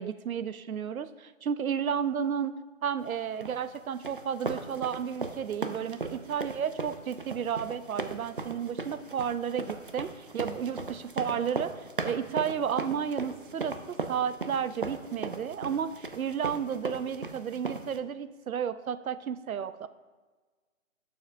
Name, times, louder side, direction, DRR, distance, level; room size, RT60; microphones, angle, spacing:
voice 1, 0.0-2.5 2.8-19.9, right 8 dB, 85° right, 13 dB, 0.6 m, -32 dB
sound 1, 3.4-18.0, right 3 dB, 40° right, 0.4 m, -37 dB
11.5 x 7.0 x 2.5 m, 1.3 s
hypercardioid pair, 170°, 41 cm